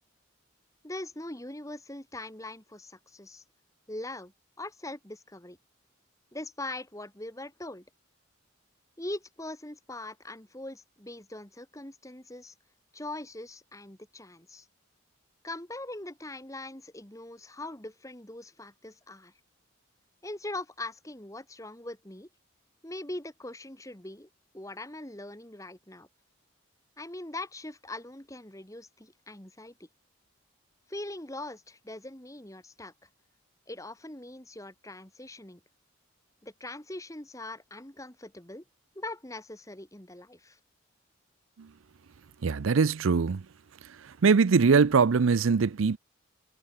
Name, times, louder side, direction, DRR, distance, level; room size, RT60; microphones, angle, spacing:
voice 1, 0.8-3.4 3.9-4.3 4.6-5.6 6.3-7.9 9.0-12.5 12.9-14.7 15.4-19.3 20.2-22.3 22.8-24.3 24.5-26.1 27.0-29.9 30.9-33.1 33.7-35.6 36.4-38.6 39.0-40.6, left 2 dB, 15° left, 2.1 m, -41 dB
voice 2, 42.4-43.4 44.2-46.0, right 5 dB, 75° right, 0.5 m, -22 dB
head